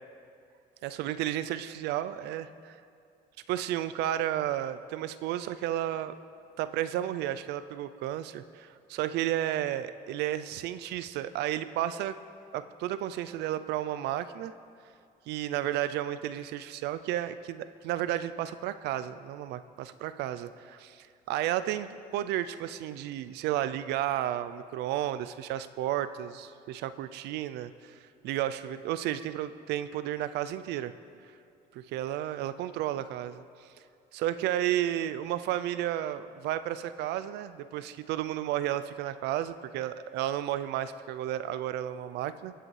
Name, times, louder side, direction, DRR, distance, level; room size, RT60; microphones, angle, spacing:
voice 1, 0.8-2.8 3.5-6.1 6.6-12.1 12.5-14.5 15.3-28.0 28.2-30.9 31.7-33.7 34.1-42.5, right 12 dB, 80° right, 13 dB, 0.4 m, -32 dB
19.0 x 7.8 x 3.2 m, 2.4 s
cardioid pair, 110°, 17 cm